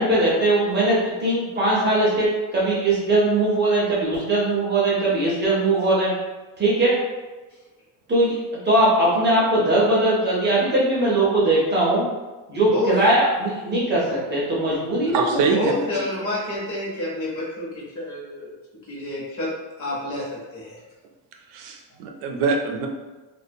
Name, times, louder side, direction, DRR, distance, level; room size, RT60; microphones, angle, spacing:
voice 1, 0.0-6.1 6.6-6.9 8.1-8.4 8.6-12.1 12.5-15.3, right 1 dB, 25° right, -7 dB, 0.4 m, -20 dB
voice 2, 12.6-12.9 15.5-18.5 18.9-20.8 21.9-22.0, left 1 dB, 40° left, -6 dB, 0.8 m, -29 dB
voice 3, 15.1-15.7 21.5-22.9, right 4 dB, 85° right, 2 dB, 0.5 m, -23 dB
2.3 x 2.2 x 2.6 m, 1.2 s
cardioid pair, 175°, 49 cm